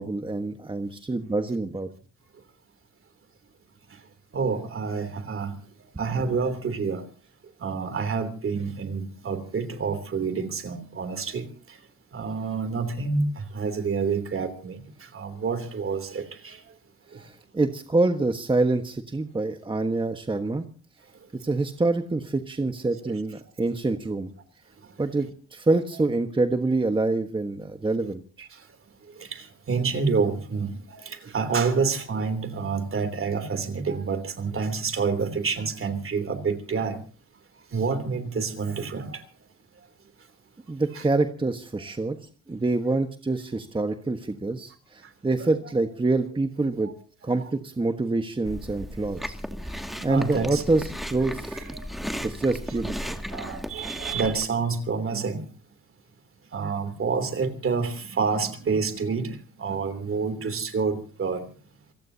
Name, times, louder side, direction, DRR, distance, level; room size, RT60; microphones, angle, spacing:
voice 1, 0.0-1.9 17.2-20.6 21.4-24.3 25.0-28.2 40.7-42.2 42.5-46.9 47.2-49.4 49.7-51.6 52.2-53.2, right 2 dB, 15° right, 1.4 m, -26 dB
voice 2, 4.3-5.5 6.0-7.0 7.6-11.5 12.1-14.8 15.1-16.6 23.0-23.1 25.9-26.0 28.4-28.5 29.2-37.0 37.7-39.2 40.9-41.0 45.4-45.6 50.0-50.6 53.0-55.4 56.5-61.5, right 5 dB, 45° right, 3.2 m, -28 dB
Chewing mastication, 48.4-54.5, equal, ahead, 2.3 m, -35 dB
27.5 x 18.0 x 2.8 m
cardioid pair, 90°, 30 cm